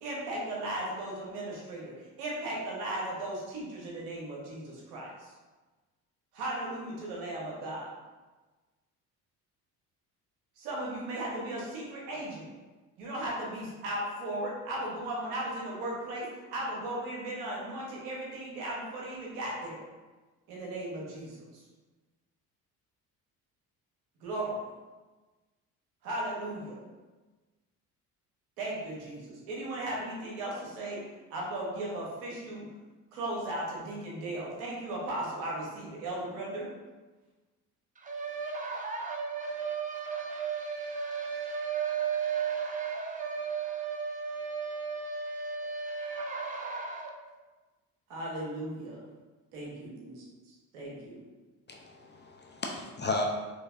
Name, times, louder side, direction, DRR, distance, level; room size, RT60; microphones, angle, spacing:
voice 1, 0.0-5.3 6.3-7.9 10.6-12.5 13.0-19.8 20.5-21.6 24.2-24.6 26.0-26.8 28.6-31.0 31.3-32.7 33.1-36.7 48.1-49.0 49.5-51.2, right 1 dB, 80° right, -4 dB, 1.2 m, -36 dB
voice 2, 38.0-47.1, right 6 dB, 20° right, 1 dB, 0.7 m, -34 dB
voice 3, 51.7-53.2, left 2 dB, 25° left, 0 dB, 0.6 m, -34 dB
4.4 x 3.1 x 2.6 m, 1.2 s
hypercardioid pair, 55°, 45 cm